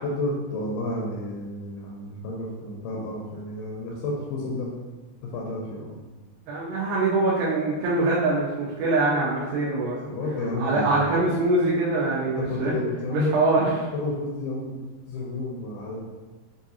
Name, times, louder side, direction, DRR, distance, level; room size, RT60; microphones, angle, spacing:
voice 1, 0.0-4.8 5.3-6.1 10.1-11.1 12.4-13.4 13.9-16.0, left 2 dB, 80° left, -3 dB, 2.4 m, -31 dB
voice 2, 6.5-10.1 10.6-12.7 13.1-13.7, right 2 dB, 80° right, -6 dB, 2.6 m, -23 dB
6.4 x 2.5 x 2.7 m, 1.2 s
omnidirectional pair, 4.6 m